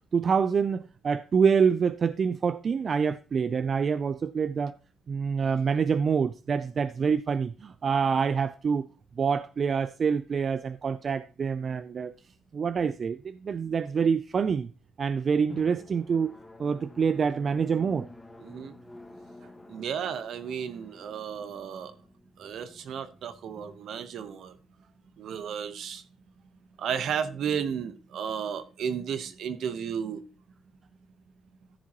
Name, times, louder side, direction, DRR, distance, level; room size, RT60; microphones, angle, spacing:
voice 1, 0.1-4.8 5.1-8.9 9.2-12.1 12.5-14.7 15.0-16.3 16.6-18.1, right 6 dB, 45° right, 0.4 m, -26 dB
Drum, 15.5-24.8, left 2 dB, 15° left, 1.5 m, -50 dB
voice 2, 18.4-18.8 19.7-21.9 22.4-24.6 25.2-26.0 26.8-30.2, right 7 dB, 70° right, 1.0 m, -33 dB
14.0 x 7.3 x 3.0 m
cardioid pair, 90°, 0 cm